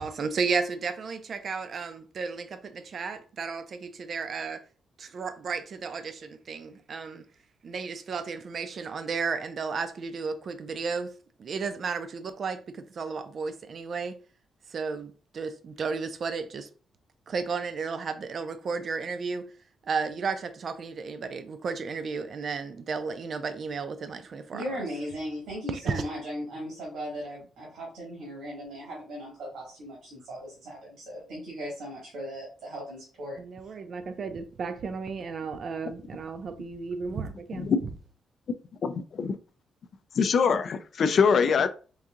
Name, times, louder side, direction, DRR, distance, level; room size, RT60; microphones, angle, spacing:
voice 1, 0.0-4.6 5.0-7.2 7.6-14.2 14.7-16.7 17.3-19.5 19.9-24.6 25.9-26.0 33.4-37.7, right 5 dB, 45° right, 0.4 m, -33 dB
voice 2, 24.5-33.4 33.6-33.7, equal, 90° right, 1.8 m, -37 dB
voice 3, 38.8-39.4 40.2-41.7, left 6 dB, 50° left, 0.4 m, -23 dB
4.6 x 2.7 x 2.5 m
cardioid pair, 140°, 0 cm